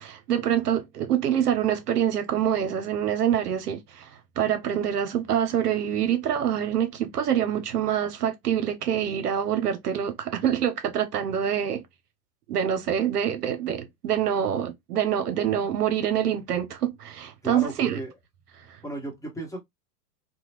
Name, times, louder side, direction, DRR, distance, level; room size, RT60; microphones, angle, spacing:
voice 1, 0.0-4.1 4.4-11.8 12.5-18.0 18.7-18.8, right 9 dB, 65° right, 0.7 m, -26 dB
voice 2, 17.4-18.1 18.8-19.6, right 1 dB, 5° left, 1.2 m, -35 dB
2.9 x 2.2 x 2.9 m
figure-of-eight pair, 105°, 49 cm